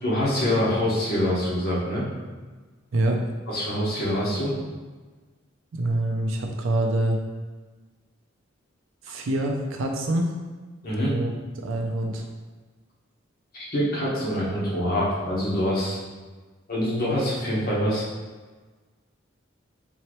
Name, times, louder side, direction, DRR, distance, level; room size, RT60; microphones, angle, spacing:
voice 1, 0.0-2.0 3.5-4.5 10.8-11.2 13.7-16.0 16.7-18.1, equal, 50° left, -7 dB, 1.2 m, -25 dB
voice 2, 5.7-7.2 9.1-10.3 11.0-11.3 11.6-12.2, right 1 dB, 80° right, 2 dB, 0.5 m, -25 dB
3.8 x 2.9 x 3.1 m, 1.3 s
head